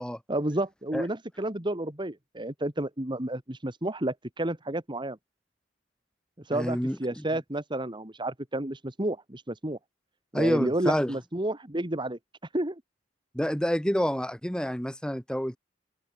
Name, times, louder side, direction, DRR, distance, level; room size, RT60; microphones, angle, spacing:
voice 1, 0.3-5.2 6.4-9.8 10.3-12.2 12.5-12.8, right 1 dB, 25° right, 2.3 m, -31 dB
voice 2, 6.5-7.2 10.3-11.1 13.3-15.6, equal, 5° left, 1.9 m, -28 dB
open air
head